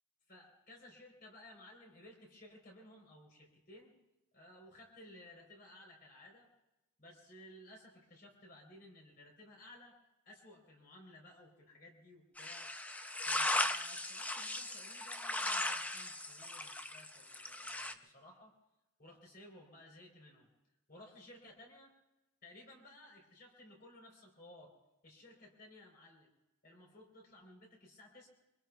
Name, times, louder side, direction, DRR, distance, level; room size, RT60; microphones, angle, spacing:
voice 1, 0.3-3.9 4.3-6.5 7.0-10.0 10.3-12.7 13.2-18.5 19.0-20.5 20.9-21.9 22.4-24.7 25.0-26.3 26.6-28.3, left 1 dB, 45° left, -1 dB, 3.9 m, -57 dB
sound 1, 12.4-17.9, left 1 dB, 5° left, 0.4 m, -37 dB
25.5 x 24.0 x 2.3 m, 0.95 s
head